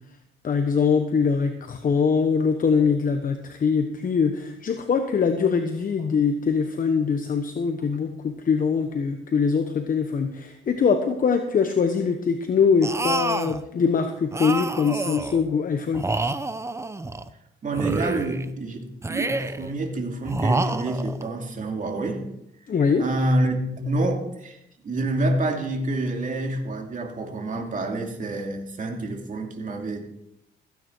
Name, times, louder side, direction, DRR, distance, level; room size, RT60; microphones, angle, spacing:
voice 1, 0.4-16.1 22.7-23.1, left 5 dB, 45° left, 7 dB, 1.1 m, -23 dB
sound 1, 12.8-13.6 14.3-15.4 15.9-17.3 17.7-18.5 19.0-19.7 20.3-21.3, right 2 dB, 15° right, 0.7 m, -28 dB
voice 2, 17.6-22.2 23.0-24.6 24.8-30.0, right 2 dB, 40° right, 3 dB, 2.6 m, -27 dB
15.5 x 9.3 x 4.6 m, 0.79 s
cardioid pair, 90°, 20 cm